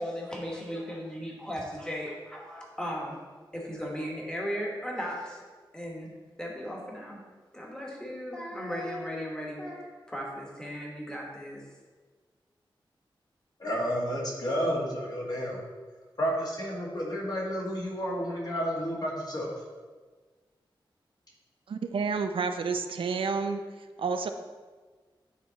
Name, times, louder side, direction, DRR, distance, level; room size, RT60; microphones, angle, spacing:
voice 1, 0.0-3.2 3.5-5.4 5.7-6.1 6.4-7.2 7.5-11.6, equal, 10° left, -2 dB, 1.2 m, -36 dB
voice 2, 13.6-15.6 16.2-19.6, equal, 50° left, -3 dB, 1.5 m, -31 dB
voice 3, 21.7-23.6 24.0-24.3, right 5 dB, 90° right, 7 dB, 0.4 m, -29 dB
9.2 x 3.2 x 4.0 m, 1.4 s
wide cardioid pair, 125°, 9 cm